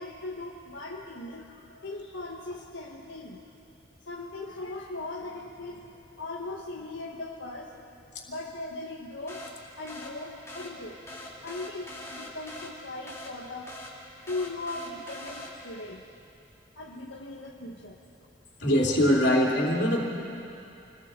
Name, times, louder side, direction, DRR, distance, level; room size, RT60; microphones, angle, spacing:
voice 1, 0.0-3.4 4.1-7.7 8.3-9.4 9.8-11.0 11.4-13.7 14.3-16.0 16.8-18.0, left 2 dB, 80° left, -2 dB, 1.4 m, -39 dB
sound 1, 9.3-15.9, left 1 dB, 15° left, 2.6 m, -43 dB
voice 2, 18.6-20.0, equal, 60° left, -2 dB, 3.3 m, -22 dB
28.5 x 21.0 x 4.5 m, 2.7 s
head